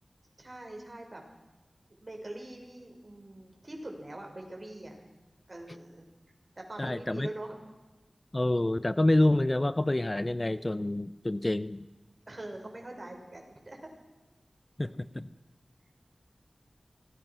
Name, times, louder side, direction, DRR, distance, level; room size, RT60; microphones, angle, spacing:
voice 1, 0.4-1.2 2.0-5.0 5.5-6.1 6.6-7.6 12.3-13.8 14.8-15.0, right 1 dB, 40° right, 2 dB, 6.3 m, -43 dB
voice 2, 6.8-7.3 8.3-11.8 14.8-15.3, left 1 dB, 30° left, 15 dB, 0.7 m, -27 dB
25.5 x 19.5 x 6.2 m, 1.1 s
wide cardioid pair, 50°, 0 cm